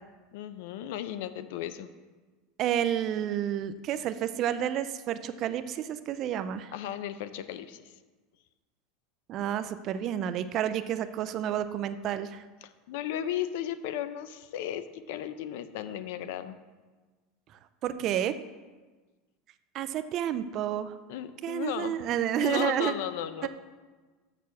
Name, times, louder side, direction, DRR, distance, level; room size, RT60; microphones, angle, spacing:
voice 1, 0.3-1.9 6.7-7.9 12.6-16.6 21.1-22.0 22.4-23.5, left 10 dB, 60° left, 12 dB, 0.5 m, -35 dB
voice 2, 2.6-6.7 9.3-12.4 17.8-18.4 19.7-21.0 21.4-22.9 23.4-23.5, right 10 dB, 30° right, 12 dB, 0.3 m, -30 dB
6.7 x 6.1 x 6.9 m, 1.3 s
supercardioid pair, 175°, 0 cm